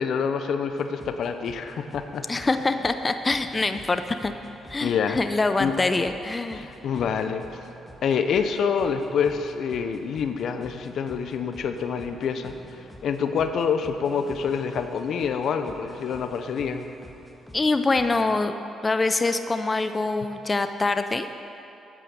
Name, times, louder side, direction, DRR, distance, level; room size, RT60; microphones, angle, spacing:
voice 1, 0.0-2.2 4.8-5.2 5.6-5.8 6.5-7.4 8.0-12.5 13.0-16.9, left 6 dB, 70° left, 8 dB, 0.6 m, -26 dB
sound 1, 0.7-18.2, equal, 5° left, 1.6 m, -48 dB
voice 2, 2.3-4.3 4.7-6.6 17.5-18.5 18.8-21.3, left 3 dB, 30° left, 9 dB, 0.5 m, -24 dB
8.9 x 8.6 x 6.6 m, 3.0 s
supercardioid pair, 65°, 0 cm